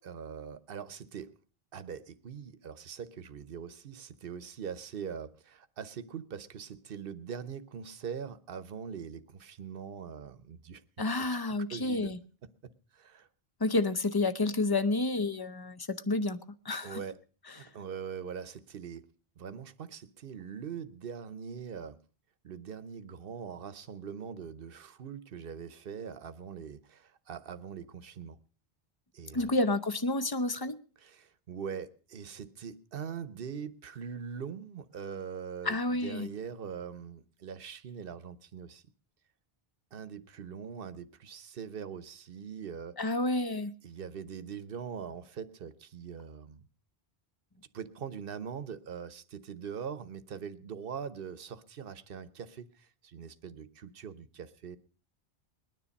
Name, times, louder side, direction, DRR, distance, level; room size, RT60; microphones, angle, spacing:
voice 1, 0.0-1.3 1.7-10.8 11.2-11.4 11.7-12.1 12.6-13.3 16.8-17.2 17.5-19.1 19.4-22.0 22.4-28.4 29.1-29.6 31.0-38.8 39.9-43.1 43.8-46.6 47.7-54.8, right 7 dB, 60° right, 1.0 m, -42 dB
voice 2, 11.0-12.2 13.6-16.4 16.6-17.0 29.3-30.8 35.6-36.3 43.0-43.7, left 2 dB, 25° left, 0.7 m, -29 dB
20.5 x 10.0 x 5.2 m
omnidirectional pair, 1.1 m